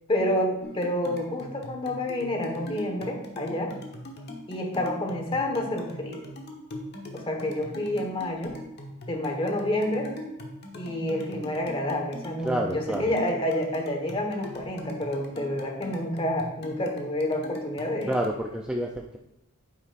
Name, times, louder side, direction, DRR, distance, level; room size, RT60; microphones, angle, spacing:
voice 1, 0.1-3.7 4.5-6.2 7.1-8.5 9.1-10.1 10.8-18.2, left 1 dB, 25° left, 2 dB, 1.4 m, -29 dB
sound 1, 0.6-18.4, left 1 dB, 50° left, 1.2 m, -41 dB
voice 2, 12.4-13.1 18.1-19.2, right 1 dB, 5° right, 0 dB, 0.5 m, -29 dB
9.4 x 8.5 x 2.5 m, 0.82 s
head